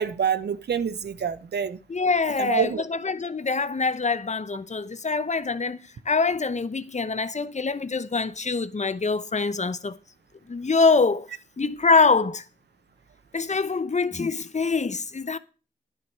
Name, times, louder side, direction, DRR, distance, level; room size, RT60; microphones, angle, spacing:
voice 1, 0.0-1.8 2.4-2.8, right 7 dB, 75° right, 0.8 m, -26 dB
voice 2, 1.9-5.8 6.1-10.0 10.5-11.3 11.6-12.4 13.3-15.4, left 4 dB, 45° left, 0.9 m, -24 dB
10.0 x 5.9 x 7.4 m
cardioid pair, 40°, 17 cm